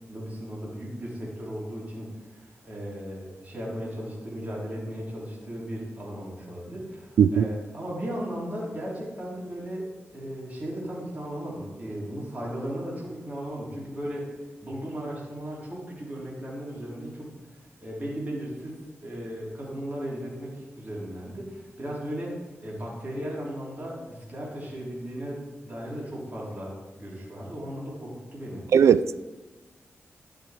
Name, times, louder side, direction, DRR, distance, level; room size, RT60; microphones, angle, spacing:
voice 1, 0.1-2.1 2.4-14.3 14.6-17.4 17.8-25.4 25.6-28.7, equal, 35° right, 3.9 m, -36 dB
voice 2, 28.7-29.2, right 7 dB, 85° right, 0.3 m, -18 dB
12.0 x 6.9 x 4.5 m
cardioid pair, 70°, 5 cm